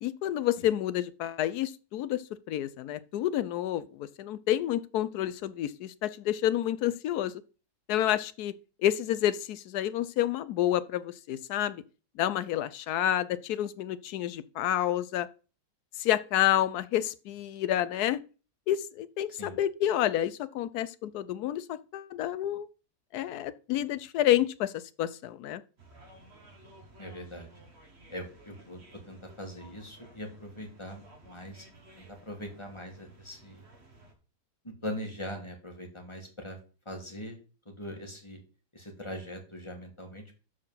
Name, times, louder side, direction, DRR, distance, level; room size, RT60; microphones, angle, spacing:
voice 1, 0.0-7.3 7.9-8.5 8.8-11.8 12.2-15.3 16.0-18.2 18.7-22.7 23.1-25.6, left 12 dB, 70° left, 1.1 m, -29 dB
sound 1, 25.8-34.1, right 2 dB, 40° right, 2.0 m, -55 dB
voice 2, 27.0-27.5 28.1-31.7 32.0-33.6 34.6-36.6 36.9-37.4 37.7-38.4 38.7-40.4, equal, 15° left, 1.9 m, -41 dB
12.5 x 4.4 x 5.6 m
omnidirectional pair, 1.9 m